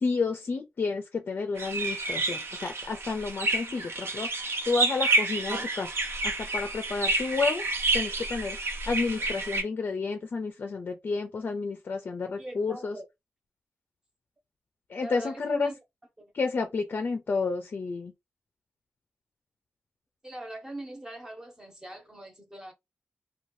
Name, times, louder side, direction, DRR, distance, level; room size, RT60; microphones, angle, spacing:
voice 1, 0.0-4.3 4.7-5.9 6.2-7.6 7.9-8.6 8.9-13.0 14.9-15.7 16.3-18.1, left 4 dB, 50° left, 0.4 m, -30 dB
sound 1, 1.6-9.6, right 2 dB, 75° right, 0.7 m, -29 dB
voice 2, 12.4-13.1 15.0-15.8 16.2-16.3 20.2-22.7, right 1 dB, 15° right, 0.8 m, -41 dB
2.7 x 2.2 x 3.1 m
wide cardioid pair, 160°, 4 cm